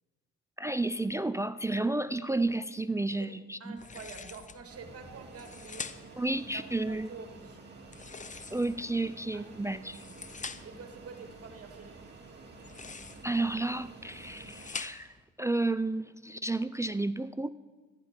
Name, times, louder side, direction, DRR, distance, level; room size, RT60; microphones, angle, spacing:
voice 1, 0.6-3.8 6.2-7.1 8.5-10.0 13.2-17.5, right 2 dB, 10° right, 15 dB, 0.3 m, -31 dB
voice 2, 3.6-5.9 6.5-7.6 9.3-9.4 9.9-10.0 10.6-12.0, right 5 dB, 50° right, 5 dB, 2.2 m, -47 dB
sound 1, 3.8-4.6 5.2-6.2 7.8-8.9 9.7-10.8 12.5-13.4 14.0-15.2, left 5 dB, 25° left, 0.7 m, -44 dB
Fixed-wing aircraft airplane, 4.7-14.7, right 3 dB, 35° right, 2.5 m, -50 dB
14.5 x 10.5 x 5.2 m, 1.4 s
cardioid pair, 90°, 30 cm